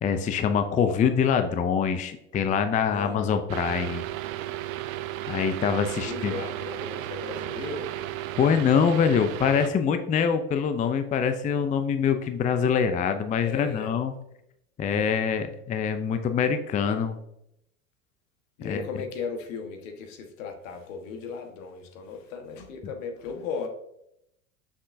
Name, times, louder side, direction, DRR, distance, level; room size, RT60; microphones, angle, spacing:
voice 1, 0.0-4.0 5.3-6.3 8.4-14.1 14.8-17.2 18.6-18.8, left 7 dB, 20° left, 8 dB, 0.4 m, -24 dB
voice 2, 2.9-3.2 5.7-7.9 13.4-13.9 18.6-23.7, left 5 dB, 75° left, 5 dB, 1.5 m, -36 dB
sound 1, 3.5-9.7, right 14 dB, 85° right, 0.6 m, -34 dB
6.3 x 5.9 x 2.7 m, 0.78 s
supercardioid pair, 110°, 40 cm